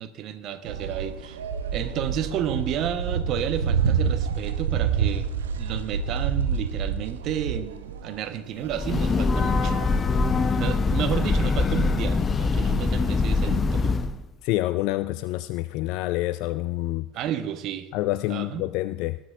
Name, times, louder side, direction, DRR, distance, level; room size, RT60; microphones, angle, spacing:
voice 1, 0.0-1.4 1.7-5.3 5.6-9.8 10.6-14.1 17.1-17.9 18.3-18.6, right 9 dB, 50° right, 11 dB, 1.0 m, -31 dB
sound 1, 0.7-10.5, right 7 dB, 70° right, 0.9 m, -28 dB
Breathing / Train, 8.6-14.2, left 4 dB, 25° left, 0.7 m, -23 dB
voice 2, 14.4-17.1 17.9-19.2, left 17 dB, 55° left, 14 dB, 0.3 m, -27 dB
19.5 x 10.5 x 3.3 m, 1.1 s
figure-of-eight pair, 65°, 0 cm